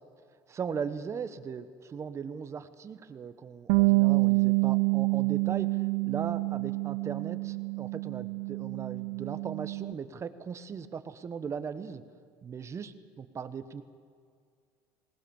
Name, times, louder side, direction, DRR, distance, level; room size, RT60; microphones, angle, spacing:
voice 1, 0.5-12.0 12.4-13.8, right 6 dB, 30° right, 11 dB, 1.1 m, -38 dB
Bass guitar, 3.7-9.9, right 29 dB, 80° right, 0.4 m, -27 dB
19.5 x 19.0 x 7.2 m, 2.2 s
supercardioid pair, 105°, 9 cm